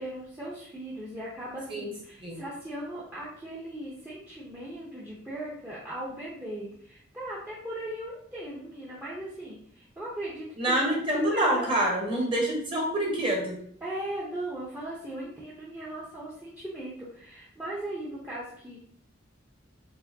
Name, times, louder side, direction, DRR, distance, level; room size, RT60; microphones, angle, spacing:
voice 1, 0.0-10.9 11.2-11.8 13.8-18.8, right 1 dB, 10° right, -6 dB, 0.7 m, -38 dB
voice 2, 10.6-13.6, right 1 dB, 25° right, -1 dB, 1.1 m, -26 dB
4.7 x 3.7 x 2.7 m, 0.65 s
head